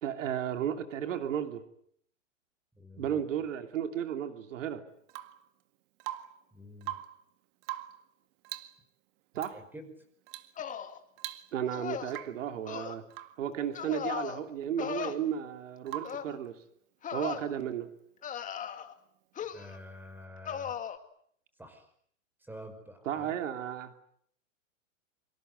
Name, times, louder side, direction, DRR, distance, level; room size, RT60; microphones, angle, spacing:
voice 1, 0.0-1.6 3.0-4.8 9.3-9.6 11.5-13.0 13.4-16.6 17.1-17.9 23.1-23.9, right 9 dB, 75° right, 7 dB, 2.9 m, -34 dB
voice 2, 2.8-3.2 6.5-7.0 9.5-9.9 19.5-20.7 21.6-21.8 22.5-23.3, left 1 dB, 5° right, 8 dB, 5.4 m, -48 dB
Rain / Water tap faucet / Drip, 5.1-5.5 6.0-6.5 6.8-7.2 7.6-8.1 8.4-8.8 9.4-9.6 10.3-10.6 10.8-10.9 11.2-11.7 12.1-12.5 13.1-13.4 15.9-16.3 18.2-18.3, right 15 dB, 45° right, 2.0 m, -42 dB
sound 1, 10.6-11.0 11.7-12.2 12.7-12.9 13.7-14.4 14.8-15.1 16.0-16.3 17.0-17.4 18.2-18.9 19.4-19.8 20.4-21.0, left 8 dB, 20° left, 2.1 m, -37 dB
26.0 x 24.5 x 8.1 m, 0.66 s
hypercardioid pair, 130°, 38 cm